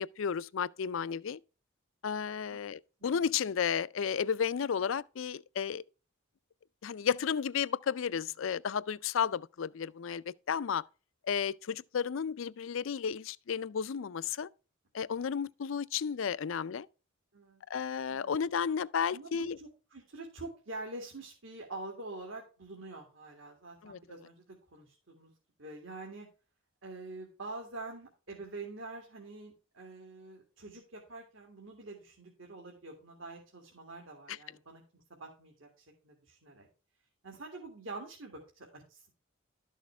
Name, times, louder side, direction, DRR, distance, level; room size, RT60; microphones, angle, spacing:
voice 1, 0.0-1.4 2.0-5.8 6.8-10.8 11.3-14.5 14.9-16.9 17.7-19.6 23.8-24.0 34.3-34.4, left 7 dB, 75° left, 0.4 m, -33 dB
voice 2, 19.1-24.3 24.7-25.3 25.6-26.3 26.8-36.7 37.2-39.1, right 2 dB, 75° right, 2.3 m, -46 dB
12.5 x 6.4 x 3.4 m
head